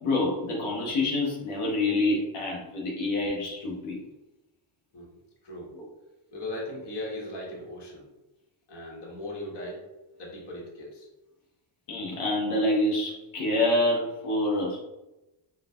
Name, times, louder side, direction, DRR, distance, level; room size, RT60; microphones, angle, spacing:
voice 1, 0.0-4.0 5.7-5.8 11.9-14.8, left 2 dB, 75° left, -3 dB, 1.0 m, -27 dB
voice 2, 4.9-5.7 6.3-8.1 8.7-9.8 10.2-11.1, left 1 dB, 55° left, -3 dB, 1.3 m, -38 dB
4.0 x 2.5 x 2.4 m, 0.98 s
cardioid pair, 80°, 50 cm